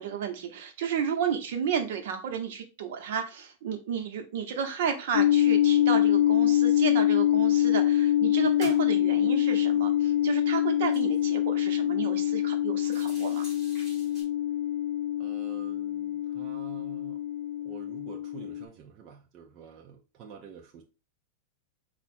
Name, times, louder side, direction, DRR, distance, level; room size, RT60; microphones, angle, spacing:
voice 1, 0.0-13.5, right 7 dB, 65° right, 0.9 m, -32 dB
sound 1, 5.1-18.6, left 12 dB, 60° left, 0.4 m, -25 dB
sound 2, 6.4-6.5 6.9-7.7 8.1-11.8 12.2-12.3 12.7-14.2, left 1 dB, 5° left, 2.7 m, -51 dB
voice 2, 15.2-17.2 17.6-20.8, right 7 dB, 30° right, 0.6 m, -48 dB
4.6 x 2.4 x 4.2 m
supercardioid pair, 165°, 0 cm